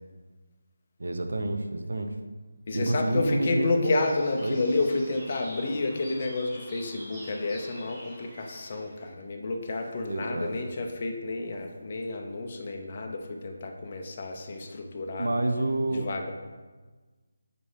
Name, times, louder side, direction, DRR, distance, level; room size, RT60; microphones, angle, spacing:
voice 1, 1.0-2.1 2.7-4.0 4.4-4.6 10.1-10.5 15.2-16.1, right 1 dB, 85° right, 6 dB, 0.7 m, -28 dB
voice 2, 2.7-15.3 15.9-16.3, left 3 dB, 30° left, 2 dB, 0.6 m, -30 dB
sound 1, 3.8-9.1, equal, 5° right, 1.1 m, -47 dB
5.2 x 4.2 x 4.8 m, 1.3 s
figure-of-eight pair, 175°, 0 cm